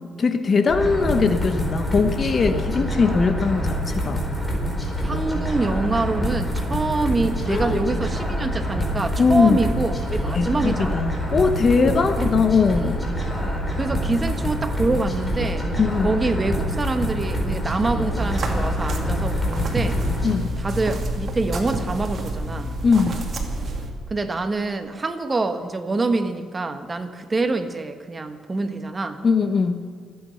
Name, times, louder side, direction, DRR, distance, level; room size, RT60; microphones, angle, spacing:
voice 1, 0.2-4.2 7.5-7.9 9.2-9.6 10.3-13.0 15.8-16.2 20.2-20.5 22.8-23.2 29.2-29.8, left 5 dB, 45° left, 9 dB, 1.2 m, -20 dB
sound 1, 0.7-20.3, equal, 15° left, 4.3 m, -26 dB
voice 2, 5.0-11.0 11.8-12.3 13.8-15.7 16.0-20.0 20.6-22.7 24.1-29.2, right 3 dB, 25° right, 8 dB, 1.3 m, -25 dB
sound 2, 18.1-23.9, right 1 dB, 45° right, 2.5 m, -28 dB
27.0 x 9.3 x 5.8 m, 2.1 s
cardioid pair, 90°, 0 cm